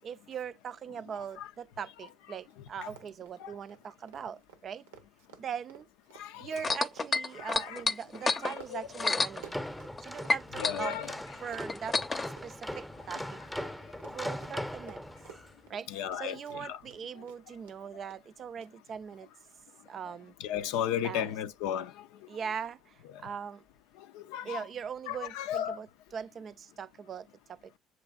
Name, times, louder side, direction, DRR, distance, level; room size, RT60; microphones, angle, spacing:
voice 1, 0.0-4.9 5.4-5.9 6.4-9.6 10.0-11.0 11.4-12.0 12.4-13.4 14.1-15.1 15.7-19.3 19.9-20.3 21.0-21.3 22.3-23.6 24.4-27.8, right 7 dB, 45° right, 0.4 m, -41 dB
Run, 2.1-2.2 2.4-2.6 2.8-10.4 10.6-17.0 17.3-17.8 18.1-18.2 18.6-18.7, right 8 dB, 85° right, 0.7 m, -53 dB
voice 2, 6.1-6.6 7.3-7.8 8.2-8.8 10.6-11.1 15.9-16.8 20.4-22.1 24.0-24.6 25.1-25.8, left 10 dB, 70° left, 0.4 m, -35 dB
sound 1, 6.6-10.0 10.3-12.3 13.1-13.2, left 3 dB, 30° left, 0.7 m, -30 dB
sound 2, 8.9-15.5, equal, 5° left, 0.7 m, -40 dB
7.5 x 3.1 x 2.3 m
hypercardioid pair, 60°, 0 cm